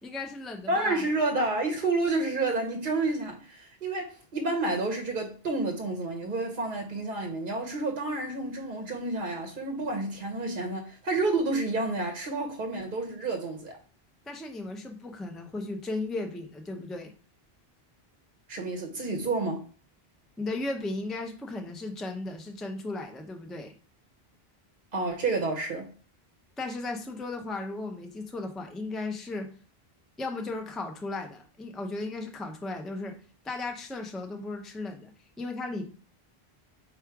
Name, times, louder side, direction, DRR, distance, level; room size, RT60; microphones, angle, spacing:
voice 1, 0.0-1.1 14.3-17.1 20.4-23.7 26.6-29.5 30.2-33.2 33.4-35.1 35.4-35.8, left 2 dB, ahead, 0.4 m, -35 dB
voice 2, 0.7-13.7 18.5-19.6 24.9-25.9, right 2 dB, 55° right, 0.9 m, -29 dB
4.6 x 2.4 x 4.6 m
omnidirectional pair, 1.0 m